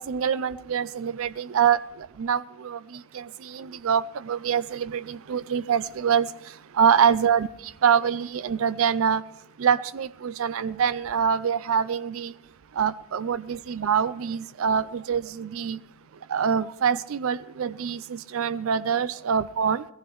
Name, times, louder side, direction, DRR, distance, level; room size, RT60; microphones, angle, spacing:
voice 1, 0.0-9.2 9.6-12.3 12.7-15.8 16.3-19.9, right 7 dB, 80° right, 16 dB, 0.4 m, -25 dB
21.0 x 15.0 x 3.1 m, 0.81 s
head